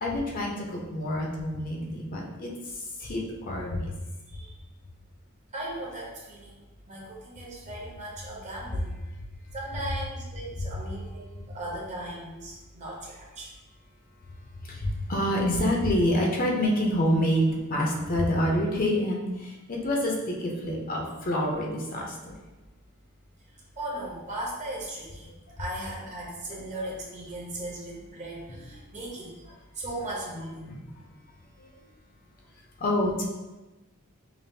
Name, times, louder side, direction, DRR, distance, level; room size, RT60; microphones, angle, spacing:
voice 1, 0.0-2.5 3.0-3.2 3.5-3.9 14.6-22.3 26.5-26.6 30.7-30.8 31.6-31.7 32.8-33.2, equal, 40° left, -1 dB, 0.6 m, -27 dB
voice 2, 5.5-6.6 6.8-8.9 9.5-13.5 23.8-25.3 25.6-29.4 29.7-30.8, right 1 dB, 35° right, -4 dB, 0.9 m, -37 dB
5.1 x 2.4 x 2.7 m, 1.1 s
head